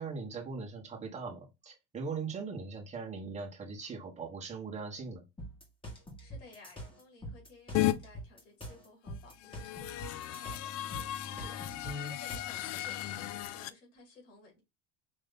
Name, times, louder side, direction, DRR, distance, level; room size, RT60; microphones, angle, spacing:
voice 1, 0.0-5.2 11.8-12.2, right 4 dB, 20° right, 1.4 m, -40 dB
sound 1, 5.4-12.6, equal, 15° left, 1.6 m, -45 dB
voice 2, 6.2-14.6, left 3 dB, 90° left, 2.4 m, -56 dB
sound 2, 7.7-7.9 9.3-13.7, left 14 dB, 50° left, 0.5 m, -35 dB
5.3 x 3.1 x 2.2 m
supercardioid pair, 125°, 35 cm